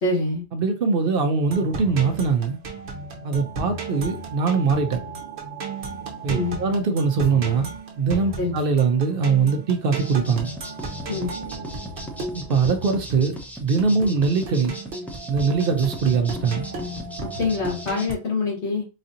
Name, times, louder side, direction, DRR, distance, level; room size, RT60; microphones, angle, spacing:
voice 1, 0.0-0.4 6.3-6.6 8.4-8.5 11.1-11.3 17.4-18.9, left 3 dB, 85° left, 1.7 m, -25 dB
voice 2, 0.5-2.6 3.2-5.0 6.2-10.5 12.3-14.8 15.3-16.7, right 5 dB, 60° right, 0.8 m, -22 dB
sound 1, 1.4-18.1, right 3 dB, 80° right, 1.1 m, -35 dB
sound 2, 9.9-18.1, equal, ahead, 0.4 m, -38 dB
4.1 x 2.7 x 2.5 m
omnidirectional pair, 1.1 m